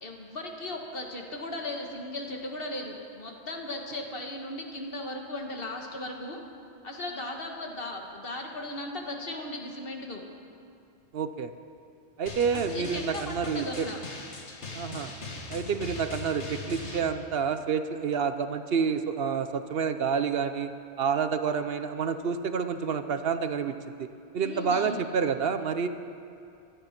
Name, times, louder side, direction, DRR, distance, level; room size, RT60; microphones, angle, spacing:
voice 1, 0.0-6.4 6.8-10.2 12.5-14.0 24.4-25.0, left 1 dB, 55° left, 2 dB, 1.8 m, -37 dB
voice 2, 11.1-11.5 12.2-13.9 14.7-15.1 15.5-20.7 21.0-23.7 24.0-24.1 24.3-25.9, right 6 dB, 65° right, 10 dB, 0.9 m, -28 dB
Drum, 12.3-17.0, left 3 dB, 90° left, 1.9 m, -40 dB
17.0 x 12.5 x 5.9 m, 2.5 s
omnidirectional pair, 1.1 m